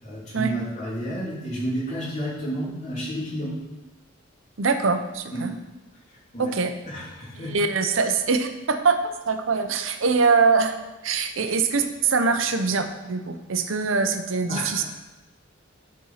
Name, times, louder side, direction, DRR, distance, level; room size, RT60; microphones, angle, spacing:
voice 1, 0.0-3.5 5.3-5.4 6.1-6.5 6.9-7.5 14.5-14.8, equal, 35° left, -7 dB, 3.2 m, -31 dB
voice 2, 4.6-5.5 6.4-6.7 7.4-10.8 11.0-14.8, right 4 dB, 80° right, 8 dB, 0.7 m, -23 dB
10.5 x 4.4 x 5.6 m, 1.1 s
head